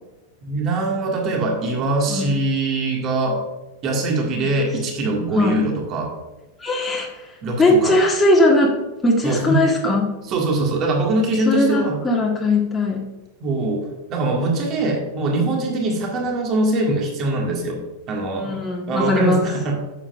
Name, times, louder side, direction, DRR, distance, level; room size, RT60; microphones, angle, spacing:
voice 1, 0.4-3.4 3.8-6.1 7.4-7.9 9.2-9.6 10.3-12.0 13.4-17.8 18.1-18.6 18.9-19.8, right 2 dB, 35° right, 0 dB, 2.0 m, -22 dB
voice 2, 2.1-2.4 5.4-5.6 6.6-7.3 7.6-10.1 11.4-13.1 18.3-19.5, left 2 dB, 15° left, -2 dB, 1.5 m, -19 dB
11.0 x 7.6 x 2.5 m, 1.1 s
figure-of-eight pair, 90°, 0 cm